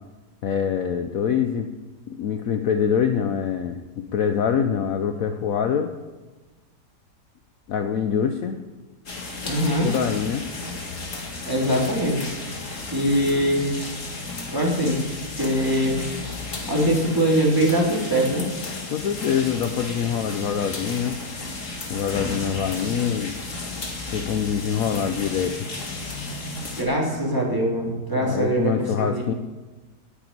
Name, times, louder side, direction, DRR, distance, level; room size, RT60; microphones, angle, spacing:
voice 1, 0.4-1.7 2.1-5.9 7.7-8.6 9.8-10.4 18.9-21.2 21.9-23.3 24.1-25.6 28.2-29.3, left 7 dB, 65° left, 8 dB, 1.0 m, -24 dB
sound 1, 9.1-26.8, left 3 dB, 45° left, 2.1 m, -33 dB
voice 2, 9.4-9.9 11.5-12.2 12.6-13.7 14.5-16.0 16.7-18.4 22.8-22.9 26.8-29.2, equal, 10° right, -3 dB, 2.9 m, -22 dB
9.6 x 8.9 x 9.4 m, 1.2 s
omnidirectional pair, 1.9 m